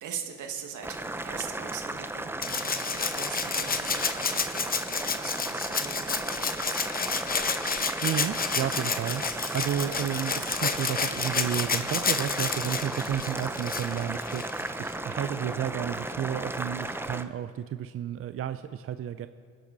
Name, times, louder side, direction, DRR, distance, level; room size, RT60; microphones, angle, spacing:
voice 1, 0.0-6.8 9.3-9.6, right 7 dB, 80° right, 4 dB, 1.8 m, -41 dB
Boiling, 0.8-17.2, right 2 dB, 10° right, 0.6 m, -35 dB
Rattle (instrument), 2.4-14.7 16.1-16.2, left 5 dB, 30° left, 0.9 m, -30 dB
voice 2, 8.0-19.3, right 9 dB, 50° right, 11 dB, 0.5 m, -32 dB
23.5 x 11.0 x 4.0 m, 2.1 s
cardioid pair, 90°, 30 cm